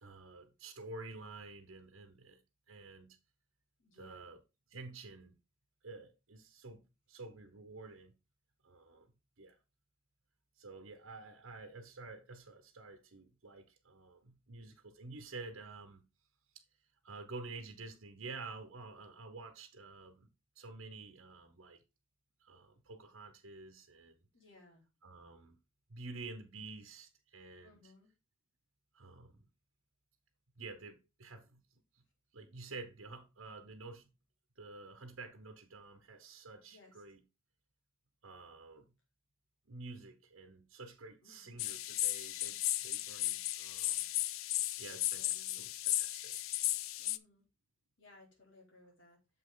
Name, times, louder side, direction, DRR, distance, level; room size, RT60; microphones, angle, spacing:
voice 1, 0.0-2.4 2.7-3.2 3.9-4.4 4.7-5.4 5.8-8.1 8.6-9.1 9.4-9.6 10.6-16.0 17.0-20.3 20.5-21.8 22.4-24.2 25.0-25.6 25.9-27.9 28.9-29.4 30.6-31.6 32.3-34.1 34.6-37.2 38.2-39.0 39.7-44.1 44.8-46.4, right 3 dB, 85° right, 1.0 m, -50 dB
voice 2, 3.8-4.3 24.3-24.9 27.6-28.1 36.7-37.0 41.2-41.8 45.1-45.6 47.0-47.5 48.0-49.2, left 3 dB, 65° left, 3.4 m, -62 dB
sound 1, 41.6-47.2, left 15 dB, 85° left, 0.5 m, -35 dB
7.2 x 5.3 x 3.9 m
head